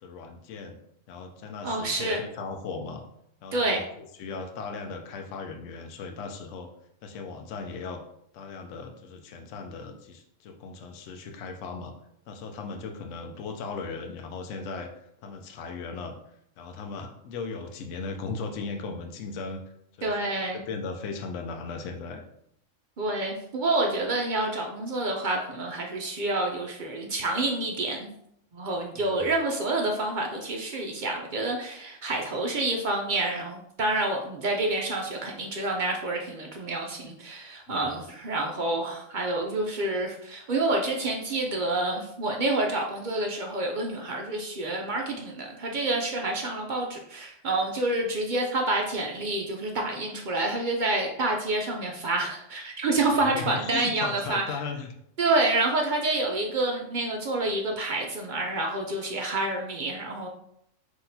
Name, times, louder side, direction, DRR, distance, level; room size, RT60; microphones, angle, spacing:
voice 1, 0.0-0.8 1.1-3.0 3.4-6.7 7.0-8.0 8.3-11.9 12.3-14.9 15.2-16.1 16.6-19.6 20.0-22.2 28.9-29.3 37.7-38.0 53.3-54.9, left 4 dB, 70° left, 4 dB, 0.9 m, -37 dB
voice 2, 1.6-2.2 3.5-3.8 20.0-20.6 23.0-28.1 28.5-54.6 55.2-60.3, right 2 dB, 60° right, 1 dB, 0.5 m, -28 dB
5.8 x 2.9 x 2.7 m, 0.73 s
omnidirectional pair, 1.4 m